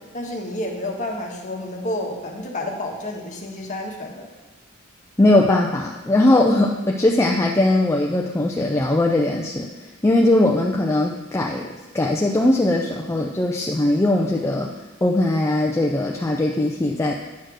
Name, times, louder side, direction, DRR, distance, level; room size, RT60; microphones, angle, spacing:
voice 1, 0.1-4.3 6.2-6.5, left 1 dB, 35° left, 0 dB, 1.3 m, -30 dB
voice 2, 5.2-9.7 10.0-11.7 11.9-14.7 15.0-17.2, left 1 dB, 15° left, 0 dB, 0.5 m, -19 dB
9.4 x 4.4 x 6.2 m, 1.2 s
head